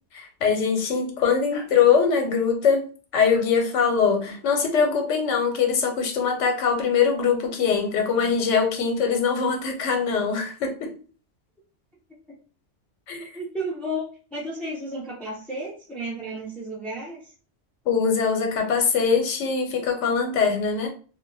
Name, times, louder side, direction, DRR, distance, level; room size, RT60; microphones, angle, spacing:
voice 1, 0.1-2.8 3.1-10.9 13.1-13.3 17.9-20.9, left 6 dB, 80° left, 4 dB, 1.0 m, -22 dB
voice 2, 13.3-14.1 14.3-17.3, right 1 dB, ahead, -6 dB, 0.3 m, -32 dB
2.2 x 2.1 x 3.8 m, 0.39 s
omnidirectional pair, 1.2 m